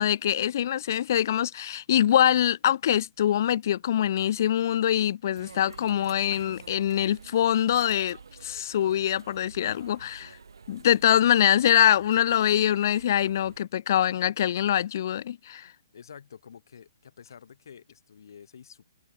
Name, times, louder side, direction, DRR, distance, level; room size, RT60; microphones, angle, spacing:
voice 1, 0.0-8.2 8.4-10.3 10.7-15.7, left 10 dB, 50° left, 0.3 m, -24 dB
sound 1, 5.4-13.6, right 5 dB, 85° right, 1.9 m, -49 dB
voice 2, 9.6-10.4 15.6-18.8, left 7 dB, 65° left, 2.8 m, -50 dB
hypercardioid pair, 150°, 2 cm